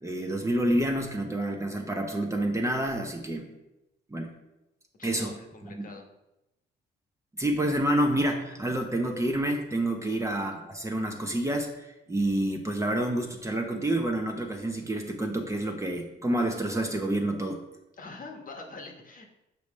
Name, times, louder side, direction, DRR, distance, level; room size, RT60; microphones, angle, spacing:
voice 1, 0.0-3.5 4.1-4.3 5.0-5.3 5.6-5.9 7.4-17.6, right 1 dB, 15° right, 2 dB, 0.8 m, -28 dB
voice 2, 5.0-6.1 10.0-10.2 18.0-19.3, left 3 dB, 45° left, 2 dB, 1.1 m, -44 dB
7.0 x 4.8 x 3.2 m, 0.93 s
cardioid pair, 90°, 20 cm